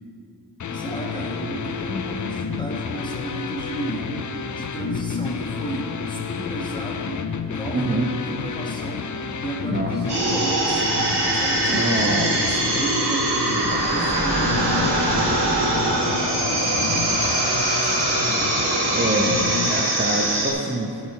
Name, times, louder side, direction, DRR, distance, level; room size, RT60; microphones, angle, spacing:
sound 1, 0.6-19.8, left 6 dB, 45° left, 0.5 m, -30 dB
voice 1, 0.7-7.2 7.5-15.1 15.9-17.2 17.8-18.2, right 1 dB, 10° left, -2 dB, 1.4 m, -33 dB
voice 2, 7.7-8.1 9.7-9.9 11.7-12.4 18.9-19.3 19.7-21.1, right 2 dB, 25° right, -2 dB, 0.8 m, -25 dB
sound 2, 10.1-20.5, right 2 dB, 70° right, 1.4 m, -22 dB
11.0 x 4.9 x 4.3 m, 2.5 s
wide cardioid pair, 55°, 42 cm